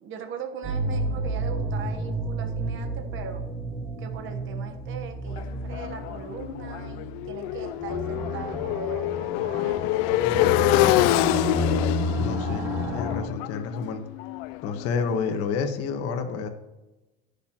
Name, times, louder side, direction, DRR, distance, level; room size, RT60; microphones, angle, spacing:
voice 1, 0.0-3.4 4.0-9.8 10.3-11.2, right 6 dB, 40° right, 5 dB, 1.2 m, -40 dB
sound 1, 0.6-13.2, right 1 dB, 10° right, 2.2 m, -31 dB
Motorcycle, 5.4-15.2, left 16 dB, 75° left, 0.5 m, -26 dB
voice 2, 10.2-11.0 12.1-14.0 14.6-16.5, left 5 dB, 50° left, 6 dB, 1.5 m, -30 dB
19.5 x 6.8 x 3.0 m, 1.1 s
supercardioid pair, 125°, 30 cm